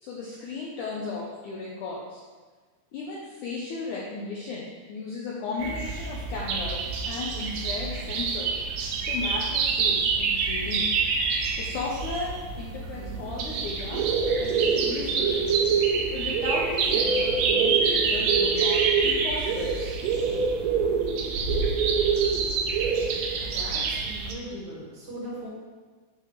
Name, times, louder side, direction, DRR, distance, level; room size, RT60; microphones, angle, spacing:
voice 1, 0.0-2.2 2.9-8.6 9.1-10.9 11.6-14.1 14.4-15.7 16.1-19.7 23.4-23.5, left 3 dB, 90° left, -4 dB, 1.7 m, -35 dB
sound 1, 5.6-24.3, right 5 dB, 80° right, 2.7 m, -26 dB
voice 2, 23.4-25.5, right 1 dB, 45° right, -7 dB, 3.5 m, -39 dB
8.9 x 3.7 x 6.7 m, 1.4 s
omnidirectional pair, 4.9 m